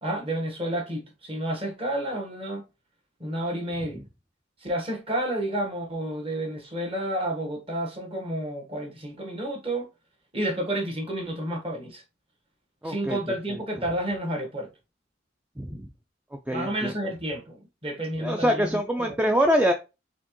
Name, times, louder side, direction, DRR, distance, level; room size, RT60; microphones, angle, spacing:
voice 1, 0.0-2.6 3.2-4.0 4.6-9.9 10.3-12.0 12.8-14.7 16.5-19.2, right 1 dB, 30° right, 1.2 m, -30 dB
voice 2, 12.8-13.2 15.6-15.8 16.5-16.9 18.2-19.7, equal, 5° right, 0.3 m, -24 dB
4.3 x 3.6 x 3.0 m
head